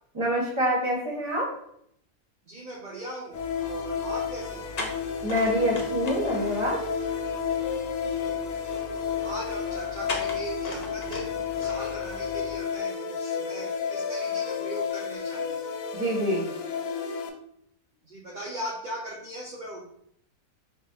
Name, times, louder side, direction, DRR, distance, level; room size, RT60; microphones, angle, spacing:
voice 1, 0.1-1.5 5.2-6.8 15.9-16.4, equal, 20° right, -3 dB, 1.2 m, -26 dB
voice 2, 2.4-4.7 8.1-8.4 8.7-15.6 18.0-19.9, right 1 dB, 45° right, -4 dB, 0.6 m, -39 dB
sound 1, 3.3-17.3, left 7 dB, 75° left, 1.0 m, -31 dB
sound 2, 3.3-12.6, left 2 dB, 40° left, 0.6 m, -40 dB
4.9 x 3.6 x 2.7 m, 0.70 s
omnidirectional pair, 1.6 m